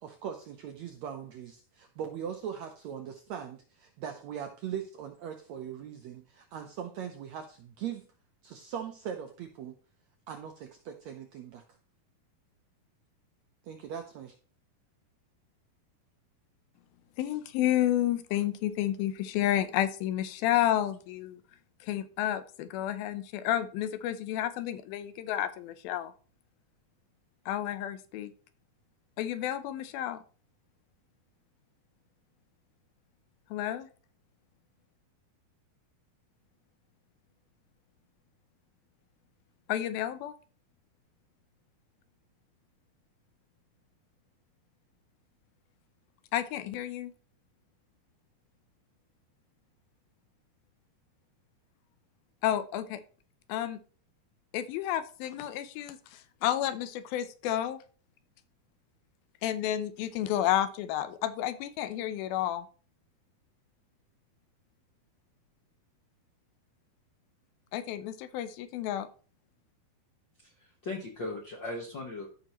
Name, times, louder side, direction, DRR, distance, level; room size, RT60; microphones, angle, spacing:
voice 1, 0.0-8.1 8.4-9.8 10.3-11.6 13.6-14.3, right 8 dB, 80° right, 5 dB, 1.6 m, -40 dB
voice 2, 17.2-21.4 21.8-26.1 27.5-28.3 29.2-30.2 33.5-33.9 39.7-40.3 46.3-47.1 52.4-53.0 53.5-53.8 54.5-57.8 59.4-62.7 67.7-69.1, left 12 dB, 90° left, 12 dB, 2.6 m, -31 dB
voice 3, 70.4-72.3, left 2 dB, 70° left, 0 dB, 1.0 m, -38 dB
14.0 x 5.8 x 3.0 m, 0.40 s
omnidirectional pair, 4.1 m